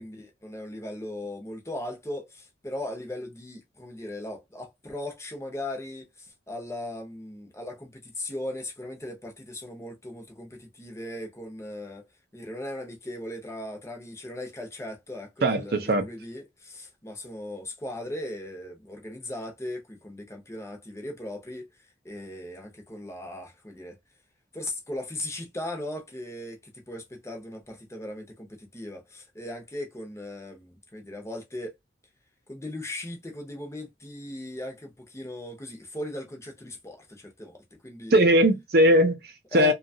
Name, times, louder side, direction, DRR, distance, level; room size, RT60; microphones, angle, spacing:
voice 1, 0.0-12.0 12.3-21.7 22.0-24.0 24.5-31.7 32.5-38.3 39.5-39.7, left 1 dB, 15° left, 0.6 m, -38 dB
voice 2, 15.4-16.1 38.1-39.7, equal, 55° right, 0.5 m, -20 dB
2.7 x 2.3 x 2.6 m
head